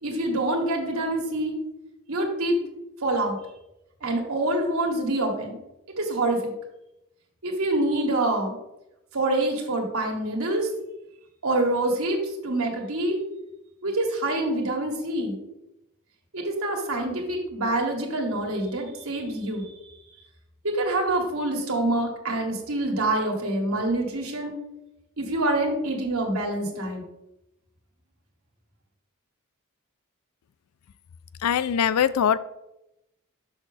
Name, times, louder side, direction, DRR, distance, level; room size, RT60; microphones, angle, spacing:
voice 1, 0.0-1.6 2.1-2.6 3.0-3.4 4.0-5.6 5.9-6.4 7.4-8.6 9.1-10.7 11.4-13.2 13.8-15.4 16.3-19.7 20.6-24.5 25.2-27.0, right 1 dB, 75° right, 1 dB, 1.6 m, -26 dB
voice 2, 31.4-32.4, left 8 dB, 85° left, 15 dB, 0.4 m, -22 dB
6.3 x 6.3 x 3.3 m, 0.88 s
head